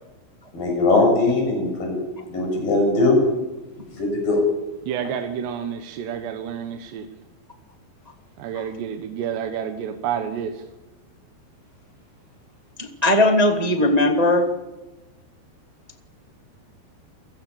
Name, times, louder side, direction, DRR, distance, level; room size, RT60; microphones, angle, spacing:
voice 1, 0.5-2.0 2.3-3.2 4.0-4.4, left 2 dB, 55° left, 1 dB, 8.8 m, -20 dB
voice 2, 4.9-7.1 8.4-10.5, right 8 dB, 80° right, 6 dB, 3.5 m, -29 dB
voice 3, 12.8-14.5, left 1 dB, 30° right, 4 dB, 0.6 m, -18 dB
29.5 x 17.5 x 7.1 m, 1.1 s
omnidirectional pair, 4.9 m